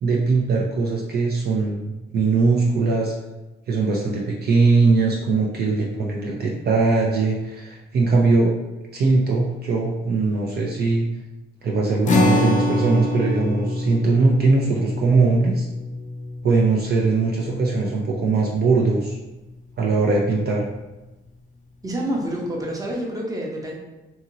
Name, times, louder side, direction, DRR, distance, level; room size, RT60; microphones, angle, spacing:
voice 1, 0.0-3.1 3.7-8.6 8.9-11.1 11.6-15.7 16.4-19.2 19.8-20.7, right 3 dB, 50° right, -2 dB, 0.5 m, -20 dB
sound 1, 12.1-18.7, left 2 dB, 40° left, 0.5 m, -25 dB
voice 2, 21.8-23.7, right 1 dB, 15° right, -2 dB, 0.8 m, -27 dB
2.8 x 2.8 x 2.6 m, 1.1 s
cardioid pair, 80°, 21 cm